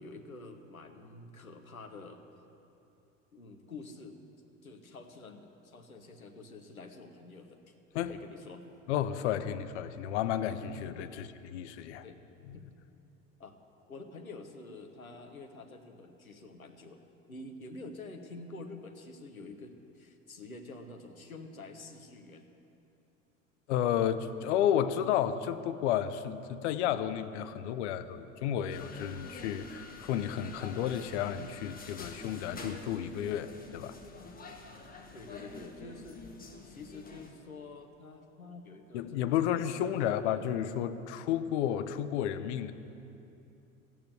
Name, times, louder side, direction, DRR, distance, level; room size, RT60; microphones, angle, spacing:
voice 1, 0.0-2.2 3.3-4.2 4.6-8.7 11.1-11.2 12.0-12.2 12.5-12.7 13.4-13.6 13.9-22.5 35.1-36.2 36.6-40.4, left 3 dB, 85° left, 4 dB, 1.1 m, -48 dB
voice 2, 8.9-12.0 12.5-12.6 23.7-34.0 38.9-42.7, left 10 dB, 55° left, 11 dB, 0.8 m, -32 dB
sound 1, 28.7-37.3, left 3 dB, 20° left, 1.5 m, -47 dB
13.5 x 9.1 x 8.3 m, 2.8 s
figure-of-eight pair, 70°, 41 cm